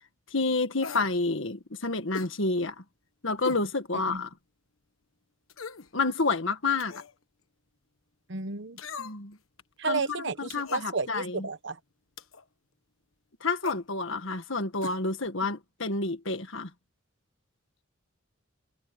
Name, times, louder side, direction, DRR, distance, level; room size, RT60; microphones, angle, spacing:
voice 1, 0.3-2.7 3.2-4.3 5.9-7.0 9.0-9.4 9.9-11.5 13.4-16.7, left 3 dB, 70° left, 1.7 m, -29 dB
sound 1, 0.8-1.2 2.1-2.4 3.4-3.7 4.2-4.3 5.5-5.9 6.8-7.1 8.8-9.3 10.5-10.9 12.2-12.4 13.6-13.8 14.8-15.0 15.3-15.4, left 4 dB, 85° left, 1.3 m, -40 dB
voice 2, 8.3-8.8 9.8-11.8, right 4 dB, 60° right, 1.1 m, -32 dB
head